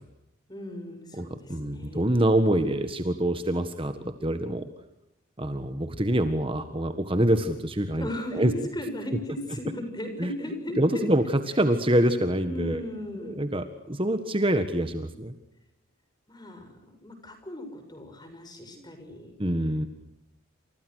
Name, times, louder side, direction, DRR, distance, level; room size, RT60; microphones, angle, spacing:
voice 1, 0.5-2.1 8.0-11.0 12.5-13.4 16.3-19.3, left 1 dB, 20° left, 7 dB, 6.8 m, -37 dB
voice 2, 1.2-4.7 5.4-8.1 8.3-8.5 10.2-10.3 10.8-11.2 11.5-12.8 13.2-15.3 19.4-19.9, right 1 dB, 25° right, 9 dB, 1.6 m, -25 dB
29.5 x 28.0 x 6.4 m, 0.83 s
head